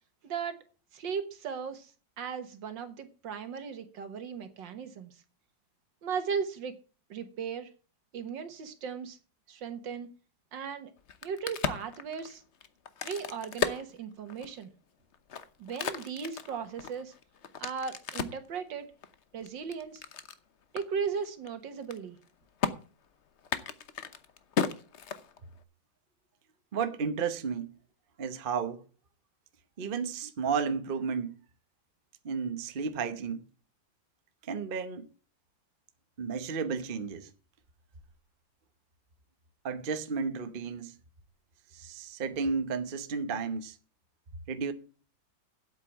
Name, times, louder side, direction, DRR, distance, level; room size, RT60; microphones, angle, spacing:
voice 1, 0.2-0.6 0.9-1.9 2.2-5.1 6.0-6.8 7.1-7.7 8.1-9.2 9.5-10.1 10.5-10.9 11.2-12.4 13.0-14.7 15.6-17.1 17.6-18.9 19.3-20.0 20.7-22.2, right 6 dB, 75° right, 2.0 m, -37 dB
Crack, 11.0-14.6 15.1-18.5 19.0-20.4 20.8-20.9 21.1-21.5 21.7-22.3 22.6-22.7 23.4-25.6, left 7 dB, 50° left, 0.9 m, -35 dB
voice 2, 26.7-27.8 28.2-28.8 29.8-31.4 32.2-33.4 34.5-35.1 36.2-37.3 39.6-41.0 41.7-43.8 44.5-44.7, right 5 dB, 40° right, 0.9 m, -33 dB
8.4 x 8.1 x 7.3 m
omnidirectional pair, 2.0 m